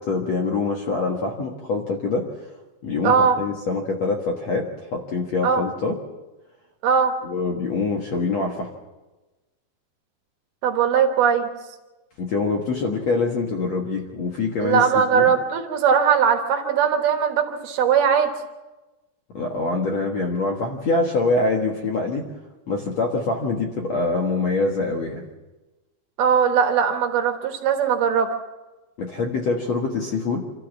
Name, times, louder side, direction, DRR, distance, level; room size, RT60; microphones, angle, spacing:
voice 1, 0.1-2.3 2.8-6.0 7.2-8.7 12.2-15.3 19.3-22.3 22.7-25.2 29.0-30.4, left 3 dB, 55° left, 1 dB, 2.0 m, -24 dB
voice 2, 3.0-3.4 5.4-5.6 6.8-7.1 10.6-11.5 14.6-18.3 26.2-28.3, right 7 dB, 70° right, 5 dB, 3.2 m, -19 dB
27.0 x 13.5 x 7.3 m, 1.1 s
omnidirectional pair, 5.0 m